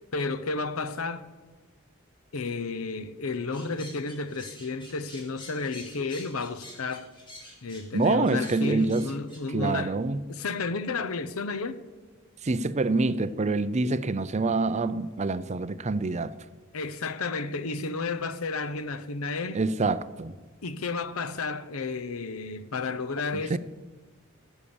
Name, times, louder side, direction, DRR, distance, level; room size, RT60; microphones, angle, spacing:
voice 1, 0.1-1.3 2.3-7.1 7.6-10.0 10.3-11.8 16.7-19.6 20.6-23.6, left 3 dB, 85° left, 0.8 m, -32 dB
sound 1, 3.5-9.4, left 1 dB, 25° left, 3.9 m, -47 dB
voice 2, 7.9-9.1 9.5-10.3 12.4-16.3 19.5-20.3 23.3-23.6, right 3 dB, 35° right, 0.5 m, -26 dB
16.0 x 8.3 x 7.1 m
head